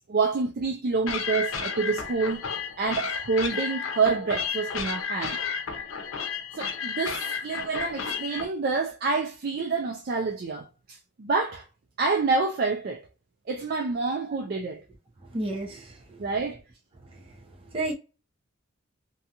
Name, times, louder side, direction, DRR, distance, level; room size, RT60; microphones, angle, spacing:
voice 1, 0.1-2.4 2.8-5.4 6.6-11.6 12.0-13.0 13.5-14.8 16.2-16.6, right 4 dB, 50° right, 0.4 m, -27 dB
sound 1, 1.1-8.5, left 6 dB, 80° left, 0.6 m, -32 dB
voice 2, 15.2-16.2 17.1-17.9, right 2 dB, 30° right, 0.8 m, -34 dB
2.7 x 2.3 x 2.8 m
head